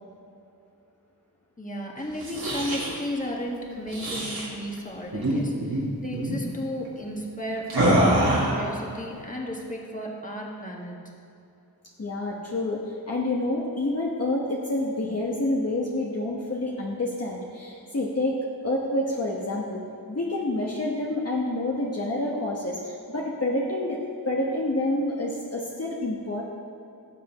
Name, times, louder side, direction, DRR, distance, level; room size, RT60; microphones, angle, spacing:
voice 1, 1.6-11.0, equal, 20° left, -1 dB, 1.6 m, -34 dB
sound 1, 2.1-3.0 3.9-4.5 5.1-5.3 5.6-5.8 6.1-6.4 7.7-8.6, right 1 dB, 70° right, 2.7 m, -24 dB
voice 2, 12.0-19.8 20.1-26.4, left 1 dB, 40° left, -4 dB, 1.2 m, -28 dB
18.0 x 7.4 x 3.1 m, 2.6 s
wide cardioid pair, 80°, 38 cm